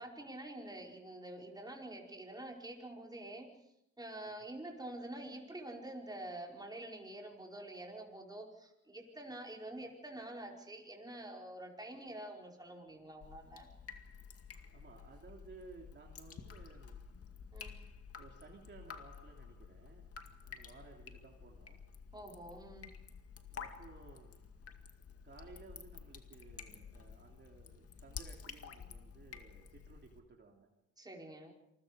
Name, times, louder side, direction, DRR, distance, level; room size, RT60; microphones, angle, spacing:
voice 1, 0.0-3.5 4.0-13.7 17.5-17.8 22.1-23.0 31.0-31.5, right 1 dB, 15° right, 0 dB, 5.0 m, -47 dB
Drip, 13.2-30.2, left 6 dB, 50° left, 2.2 m, -51 dB
voice 2, 14.7-17.0 17.8-20.1 20.4-21.8 23.5-24.4 25.2-30.7, right 4 dB, 40° right, 0 dB, 3.2 m, -57 dB
27.5 x 21.0 x 5.2 m, 0.82 s
cardioid pair, 90°, 30 cm